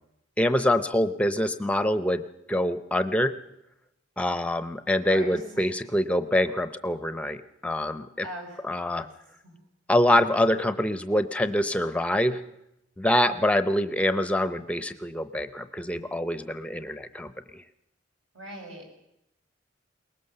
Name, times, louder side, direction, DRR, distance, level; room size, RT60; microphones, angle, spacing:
voice 1, 0.4-2.2 2.5-3.4 4.2-8.3 8.6-9.1 9.9-12.4 13.0-17.6, left 1 dB, 5° left, 11 dB, 0.7 m, -25 dB
voice 2, 5.1-5.6 8.2-8.6 8.9-9.1 9.4-9.5 18.3-18.9, right 1 dB, 70° right, 1 dB, 6.0 m, -40 dB
22.0 x 19.5 x 6.7 m, 0.84 s
head